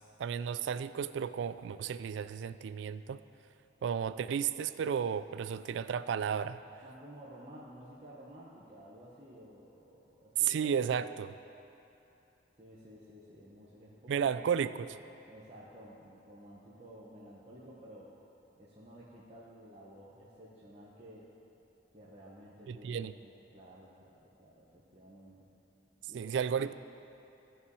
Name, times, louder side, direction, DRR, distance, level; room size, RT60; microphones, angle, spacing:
voice 1, 0.2-3.2 3.8-6.6 10.4-11.3 14.1-15.0 22.7-23.1 26.1-26.7, right 7 dB, 70° right, 14 dB, 0.3 m, -33 dB
voice 2, 6.8-11.0 12.6-14.7 15.3-18.1 18.6-21.3 21.9-25.5 26.1-26.5, equal, 35° right, -7 dB, 1.1 m, -53 dB
14.5 x 5.7 x 4.7 m, 3.0 s
head